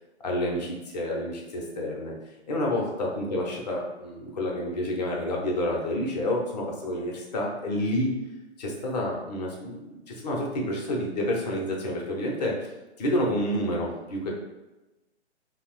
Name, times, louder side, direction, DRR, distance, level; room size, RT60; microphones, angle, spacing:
voice 1, 0.2-2.1 2.5-8.1 8.6-12.5 13.0-14.4, left 1 dB, 35° left, -1 dB, 0.5 m, -29 dB
2.9 x 2.0 x 2.9 m, 1.0 s
hypercardioid pair, 140°, 35 cm